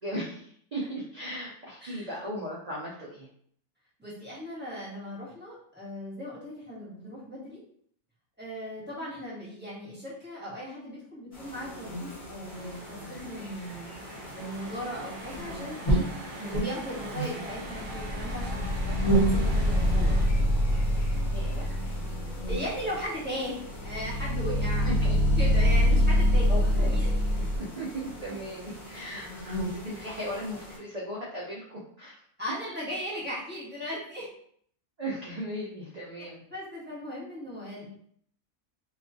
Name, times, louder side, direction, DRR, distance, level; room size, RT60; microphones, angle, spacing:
voice 1, 0.0-3.3 16.4-16.6 21.3-21.8 24.6-25.4 26.5-27.0 27.3-32.1 35.0-36.4, equal, 70° right, -6 dB, 0.3 m, -37 dB
voice 2, 4.0-7.6 8.4-13.9 14.3-16.1 16.5-20.3 22.5-27.1 32.4-34.3 36.5-38.0, equal, 10° right, -8 dB, 1.0 m, -38 dB
sound 1, 11.3-30.8, right 1 dB, 30° left, 0.8 m, -35 dB
sound 2, 12.5-20.3, right 1 dB, 55° right, 0.7 m, -43 dB
sound 3, 17.5-27.6, equal, 75° left, 1.0 m, -25 dB
2.4 x 2.3 x 2.5 m, 0.63 s
omnidirectional pair, 1.5 m